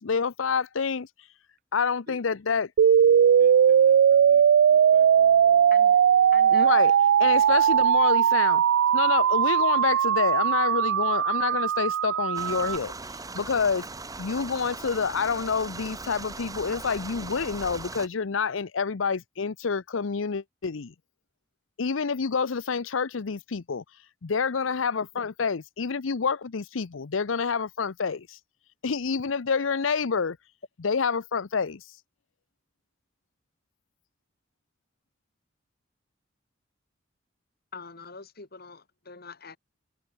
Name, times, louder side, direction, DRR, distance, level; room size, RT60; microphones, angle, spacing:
voice 1, 0.0-1.1 1.7-2.7 6.5-6.9 7.2-8.6 8.9-12.9 13.3-13.8 14.2-20.9 21.8-23.8 24.2-28.4 28.8-30.4 30.8-31.8, left 5 dB, 90° left, 0.7 m, -28 dB
sound 1, 2.8-12.8, right 8 dB, 75° right, 0.3 m, -19 dB
voice 2, 3.2-5.9, right 2 dB, 50° right, 2.5 m, -52 dB
voice 3, 6.3-6.8 7.5-7.6 25.1-25.3 37.7-39.6, left 4 dB, 55° left, 2.3 m, -44 dB
sound 2, 12.3-18.1, right 3 dB, 20° right, 1.4 m, -39 dB
head